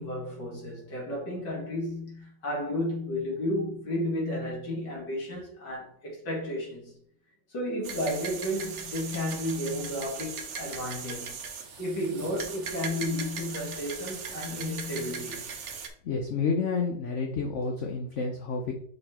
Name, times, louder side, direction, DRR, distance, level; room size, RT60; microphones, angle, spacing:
voice 1, 0.0-6.9 7.5-11.4 11.8-15.4, left 1 dB, 75° left, 2.5 m, -32 dB
sound 1, 7.8-15.9, right 5 dB, 50° right, 0.9 m, -39 dB
voice 2, 16.0-18.7, left 4 dB, 60° left, 0.8 m, -29 dB
5.3 x 4.2 x 4.2 m
omnidirectional pair, 1.9 m